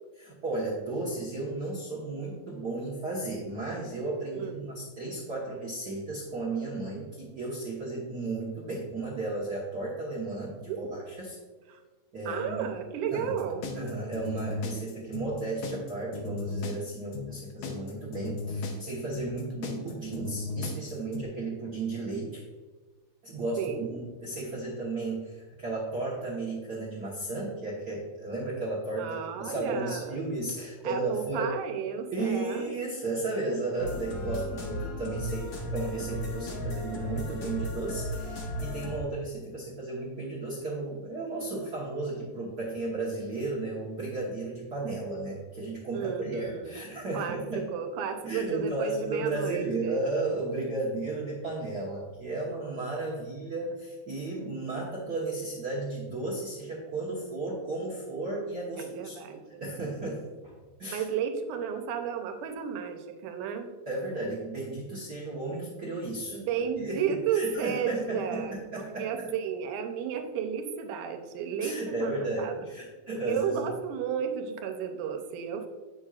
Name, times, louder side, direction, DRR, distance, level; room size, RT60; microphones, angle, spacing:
voice 1, 0.2-11.4 12.1-12.7 13.1-13.3 13.7-22.4 23.2-31.5 32.1-47.7 48.2-59.2 59.6-60.5 60.8-61.0 63.9-66.4 66.8-69.3 71.6-73.6, right 2 dB, 50° right, -5 dB, 1.2 m, -34 dB
voice 2, 4.3-4.7 10.7-10.9 11.7-11.8 12.3-13.6 23.6-23.9 29.0-30.2 30.8-32.7 45.9-46.8 47.1-50.0 58.8-59.6 60.9-63.7 66.3-72.5 73.3-75.7, right 7 dB, 90° right, 5 dB, 2.3 m, -33 dB
sound 1, 13.4-21.3, left 4 dB, 90° left, 2.4 m, -36 dB
sound 2, 33.8-39.0, equal, 65° left, 0.9 m, -35 dB
9.0 x 7.0 x 2.4 m, 1.4 s
omnidirectional pair, 3.5 m